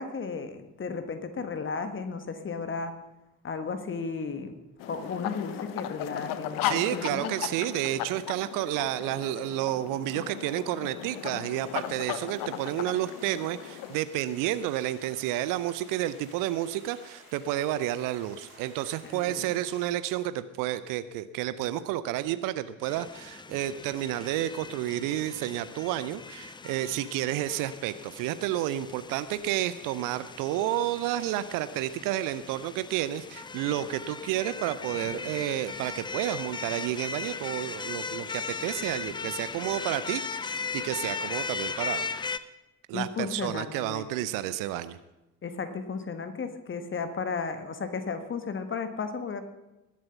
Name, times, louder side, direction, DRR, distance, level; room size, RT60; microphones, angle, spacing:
voice 1, 0.0-2.9 3.4-4.6 4.9-7.3 19.1-19.4 42.9-44.1 45.4-49.4, left 5 dB, 30° left, 9 dB, 1.5 m, -34 dB
sound 1, 4.8-14.0, left 11 dB, 55° left, 0.9 m, -36 dB
voice 2, 6.6-42.1 42.9-45.0, right 13 dB, 50° right, 14 dB, 0.7 m, -31 dB
sound 2, 11.5-19.9, equal, 85° left, 3.7 m, -53 dB
sound 3, 22.8-42.4, left 5 dB, 10° left, 0.5 m, -38 dB
20.0 x 7.6 x 5.7 m, 1.0 s
figure-of-eight pair, 50°, 41 cm